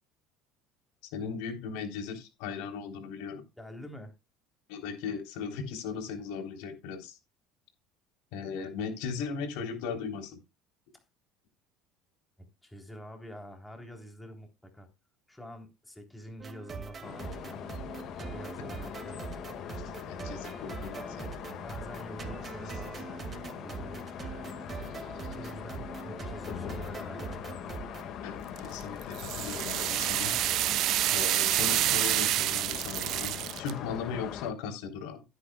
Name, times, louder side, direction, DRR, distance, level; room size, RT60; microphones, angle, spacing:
voice 1, 1.1-3.4 4.7-7.2 8.3-10.4 20.1-21.3 28.2-30.4 31.1-35.2, left 6 dB, 75° left, 3.6 m, -37 dB
voice 2, 3.6-4.1 12.4-14.9 15.3-17.6 18.3-19.2 21.6-24.0 25.3-27.6, equal, 5° left, 3.4 m, -46 dB
sound 1, 16.4-28.1, right 5 dB, 30° right, 2.1 m, -43 dB
sound 2, 17.0-34.5, left 9 dB, 55° left, 1.8 m, -41 dB
sound 3, 28.6-33.7, right 14 dB, 60° right, 0.5 m, -28 dB
16.5 x 8.6 x 2.3 m
supercardioid pair, 100°, 0 cm